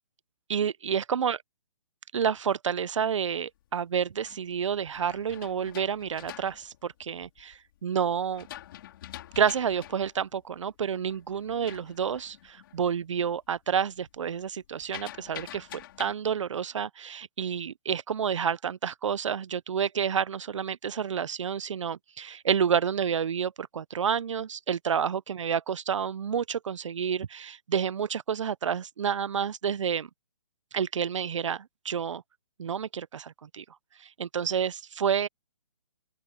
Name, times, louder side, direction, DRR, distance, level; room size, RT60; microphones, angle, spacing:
voice 1, 0.5-1.4 2.1-8.5 9.4-15.7 16.0-30.1 30.7-32.2 32.6-33.6 34.2-35.3, right 7 dB, 60° right, 1.0 m, -29 dB
sound 1, 3.7-7.6 8.1-12.9 13.2-13.6 13.9-16.1, left 13 dB, 40° left, 4.1 m, -46 dB
open air
hypercardioid pair, 150°, 18 cm